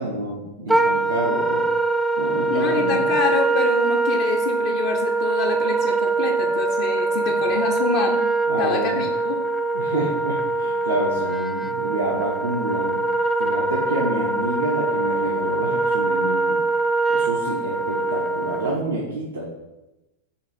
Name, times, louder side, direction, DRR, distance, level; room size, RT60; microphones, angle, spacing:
voice 1, 0.0-1.6 2.2-3.1 8.5-9.0 9.7-13.0 13.4-16.6 17.1-19.5, right 2 dB, 80° right, -4 dB, 0.9 m, -28 dB
Wind instrument woodwind instrument, 0.7-18.8, right 3 dB, 5° right, 0.3 m, -23 dB
voice 2, 2.5-8.3 8.6-9.4, left 5 dB, 55° left, 0 dB, 0.6 m, -26 dB
6.8 x 3.0 x 5.1 m, 1.0 s
figure-of-eight pair, 95°, 0 cm